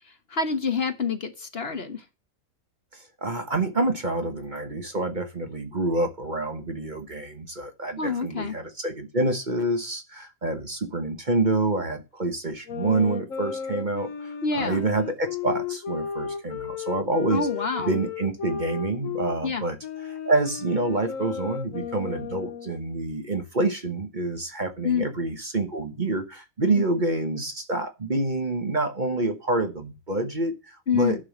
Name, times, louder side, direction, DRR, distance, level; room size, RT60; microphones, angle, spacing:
voice 1, 0.3-2.0 8.0-8.5 14.4-14.8 17.3-17.9 19.4-19.6 24.8-25.0 30.9-31.2, left 5 dB, 50° left, 1.3 m, -27 dB
voice 2, 2.9-17.5 17.8-31.3, right 2 dB, 35° right, 1.3 m, -27 dB
sound 1, 12.7-19.4 19.8-22.8, left 7 dB, 70° left, 1.5 m, -34 dB
10.5 x 5.7 x 7.1 m
omnidirectional pair, 1.5 m